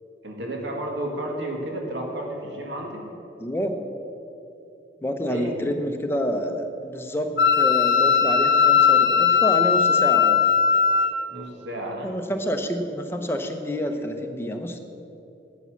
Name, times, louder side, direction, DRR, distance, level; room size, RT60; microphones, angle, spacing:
voice 1, 0.2-3.0 5.2-5.5 11.3-12.1, right 1 dB, 75° right, 0 dB, 1.8 m, -32 dB
voice 2, 3.4-3.8 5.0-10.4 12.0-14.8, equal, 15° left, 5 dB, 0.8 m, -28 dB
Wind instrument woodwind instrument, 7.4-11.1, left 7 dB, 70° left, 1.0 m, -18 dB
11.5 x 8.3 x 6.2 m, 2.9 s
head